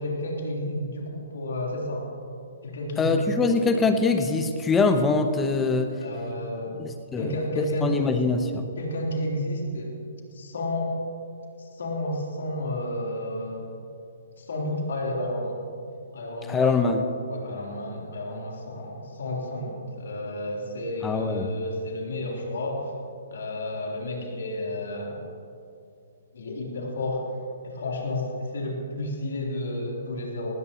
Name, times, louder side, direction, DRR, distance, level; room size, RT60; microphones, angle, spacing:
voice 1, 0.0-2.1 2.6-3.5 6.0-6.8 7.2-8.2 8.8-9.9 10.3-11.0 11.6-13.7 14.4-15.6 16.1-16.8 17.3-22.9 23.3-25.2 26.3-27.3 27.6-30.5, left 1 dB, 70° left, -2 dB, 3.7 m, -31 dB
voice 2, 3.0-5.9 6.8-8.6 16.5-17.1 21.0-21.5, left 3 dB, 15° left, 7 dB, 1.0 m, -23 dB
19.0 x 16.5 x 3.1 m, 2.5 s
hypercardioid pair, 135°, 0 cm